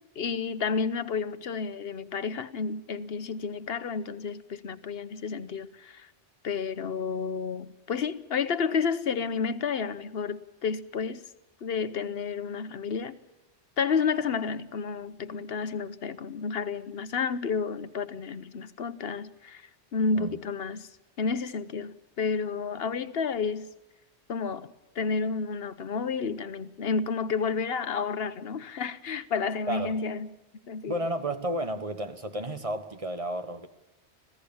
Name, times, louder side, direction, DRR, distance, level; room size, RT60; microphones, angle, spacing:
voice 1, 0.2-6.1 6.4-11.3 11.6-13.2 13.8-20.9 21.2-23.7 24.3-30.3 30.7-31.0, left 5 dB, 65° left, 1.2 m, -31 dB
voice 2, 30.8-33.7, right 1 dB, 30° right, 1.5 m, -32 dB
26.0 x 16.0 x 7.2 m
omnidirectional pair, 1.1 m